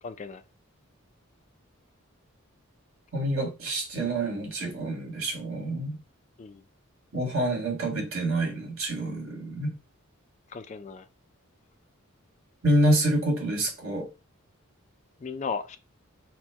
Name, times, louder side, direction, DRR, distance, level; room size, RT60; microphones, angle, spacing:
voice 1, 0.0-0.4 6.4-6.6 10.5-11.1 15.2-15.8, left 5 dB, 35° left, 0.3 m, -35 dB
voice 2, 3.1-6.0 7.1-9.7 12.6-14.1, right 1 dB, 80° right, 2.0 m, -27 dB
4.3 x 2.2 x 4.6 m
head